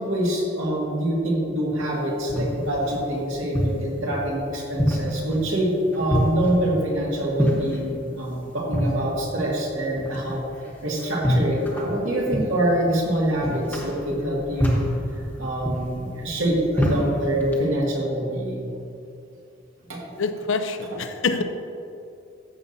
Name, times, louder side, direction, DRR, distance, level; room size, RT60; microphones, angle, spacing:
voice 1, 0.0-10.5 10.8-14.8 15.4-18.7 19.9-20.0, right 1 dB, 80° right, -4 dB, 2.1 m, -25 dB
sound 1, 1.8-17.7, equal, 10° left, 1.0 m, -28 dB
voice 2, 20.2-21.4, left 4 dB, 70° left, 8 dB, 0.5 m, -25 dB
13.5 x 7.1 x 2.7 m, 2.6 s
head